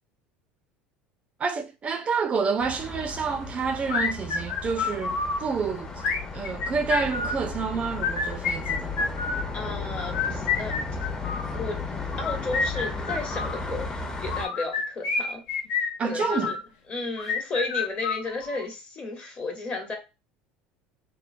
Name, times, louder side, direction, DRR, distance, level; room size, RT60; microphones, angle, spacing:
voice 1, 1.4-5.9 6.3-9.1 16.0-16.5, right 5 dB, 35° right, 0.4 m, -28 dB
sound 1, 2.6-14.5, left 3 dB, 20° left, 0.6 m, -34 dB
sound 2, 3.9-5.4 6.0-7.4 7.9-9.5 10.0-11.5 12.1-13.6 14.3-16.6 17.2-18.6, left 4 dB, 75° left, 0.7 m, -29 dB
voice 2, 9.5-10.7 11.5-13.9 14.2-15.4 16.0-16.6 16.9-20.0, left 3 dB, 35° left, 1.0 m, -33 dB
2.9 x 2.0 x 2.4 m
supercardioid pair, 90°, 4 cm